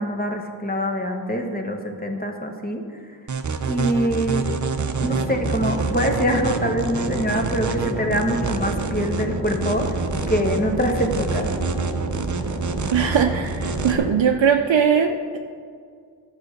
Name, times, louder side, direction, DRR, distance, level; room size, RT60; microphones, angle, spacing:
voice 1, 0.0-2.8 3.7-4.4 5.0-9.9 10.3-11.5, equal, 20° left, 3 dB, 1.2 m, -24 dB
sound 1, 3.3-13.9, right 4 dB, 45° right, 0.6 m, -27 dB
sound 2, 5.0-14.1, equal, 10° right, 2.4 m, -31 dB
voice 2, 12.9-15.4, right 7 dB, 90° right, 3 dB, 0.6 m, -20 dB
12.5 x 4.9 x 6.4 m, 2.2 s
wide cardioid pair, 50°, 43 cm